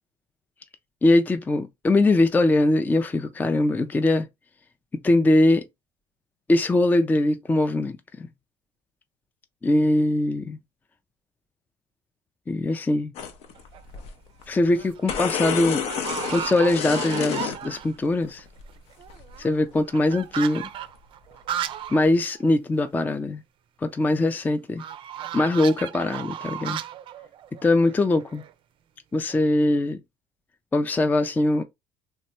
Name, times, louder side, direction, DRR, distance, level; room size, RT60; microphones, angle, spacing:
voice 1, 1.0-4.3 5.0-5.6 6.5-8.3 9.6-10.6 12.5-13.1 14.5-15.8 16.3-18.4 19.4-20.7 21.9-23.4 23.8-24.8 25.3-26.8 27.6-28.4 29.1-30.0 30.7-31.6, left 2 dB, 15° left, 0.3 m, -21 dB
sound 1, 13.1-14.1 14.4-14.5 14.8-17.6 18.2-18.7 19.1-19.4 19.7-19.8, left 7 dB, 60° left, 0.6 m, -29 dB
sound 2, 13.6-14.0 14.5-15.0 15.2-15.3 15.8-18.0 18.4-18.5 18.7-22.1 22.4-22.5 22.8-22.9 24.8-28.5, right 10 dB, 50° right, 0.4 m, -35 dB
3.2 x 2.1 x 2.8 m
supercardioid pair, 90°, 11 cm